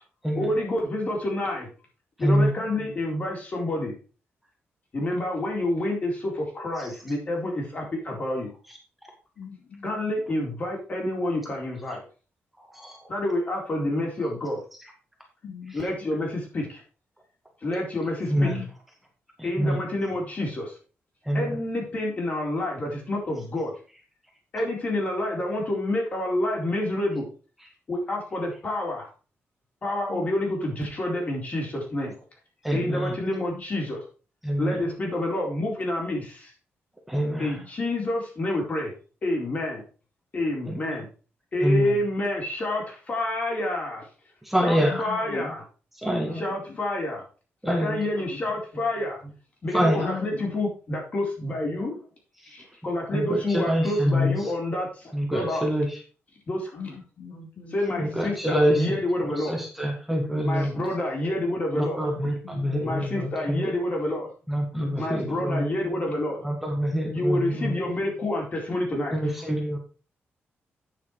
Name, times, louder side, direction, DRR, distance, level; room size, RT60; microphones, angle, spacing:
voice 1, 0.4-1.7 2.2-4.0 4.9-8.5 9.8-12.0 13.1-14.6 15.7-16.8 17.6-18.5 19.4-20.7 21.3-23.7 24.5-27.3 27.9-29.1 29.8-32.1 32.7-34.0 34.6-36.5 37.4-38.9 39.2-39.8 40.3-41.1 41.5-44.0 44.6-45.6 46.3-47.2 47.7-49.3 49.6-52.0 52.5-55.7 56.5-56.7 57.7-59.6 60.4-62.0 62.8-64.3 65.0-66.5 67.1-69.3, left 1 dB, 35° left, -1 dB, 4.3 m, -28 dB
voice 2, 2.2-2.5 12.7-13.0 18.3-18.6 19.4-19.8 21.3-21.6 32.6-33.1 34.4-34.9 37.1-37.6 41.6-42.0 44.4-45.1 46.0-46.4 47.6-48.0 49.7-50.1 53.1-54.3 55.1-56.0 58.0-58.9 59.2-60.7 61.8-63.6 64.5-65.7 66.4-67.7 69.1-69.8, equal, 5° right, 0 dB, 1.8 m, -25 dB
voice 3, 9.3-9.8 15.4-15.8 18.3-18.7 30.1-30.4 33.2-33.6 37.2-37.7 40.8-41.0 44.8-45.5 46.2-46.8 48.1-48.5 49.9-50.5 56.7-58.1 60.3-60.9 61.7-63.5 64.7-66.2 66.9-68.1, left 4 dB, 70° left, 1 dB, 3.5 m, -41 dB
9.1 x 6.8 x 4.8 m, 0.37 s
wide cardioid pair, 155°, 4 cm